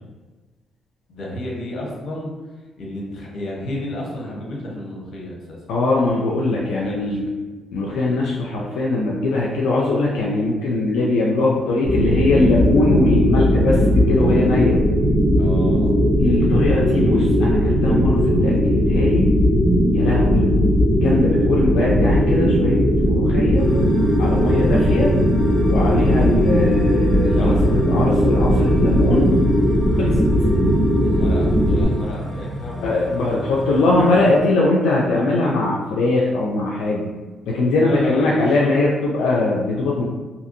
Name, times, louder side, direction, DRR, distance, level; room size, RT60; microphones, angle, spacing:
voice 1, 1.1-2.3 2.8-5.6 6.4-7.4 15.4-15.9 27.2-27.7 31.0-33.7 37.8-38.7, left 1 dB, 60° left, -2 dB, 0.9 m, -32 dB
voice 2, 5.7-7.3 7.7-14.8 16.2-19.3 19.9-20.6 21.0-23.7 24.2-25.1 25.7-29.4 30.0-30.2 32.8-37.1 37.5-40.0, left 2 dB, 90° left, -4 dB, 0.4 m, -21 dB
sound 1, 11.8-31.8, equal, 60° right, 1.0 m, -17 dB
sound 2, 23.6-34.4, equal, 30° right, 1.3 m, -32 dB
2.8 x 2.5 x 2.6 m, 1.3 s
cardioid pair, 90°, 0 cm